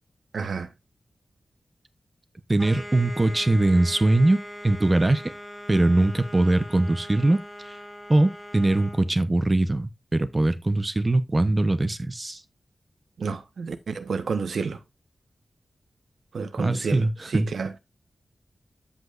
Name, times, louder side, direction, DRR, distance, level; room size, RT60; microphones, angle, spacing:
voice 1, 0.3-0.7 13.2-14.8 16.3-17.1 17.3-17.8, right 5 dB, 80° right, 1.0 m, -30 dB
voice 2, 2.5-5.3 5.7-7.4 8.1-12.4 16.6-17.5, right 2 dB, 20° right, 0.8 m, -22 dB
sound 1, 2.6-9.1, equal, ahead, 2.1 m, -41 dB
14.0 x 5.3 x 2.5 m
wide cardioid pair, 140°, 0 cm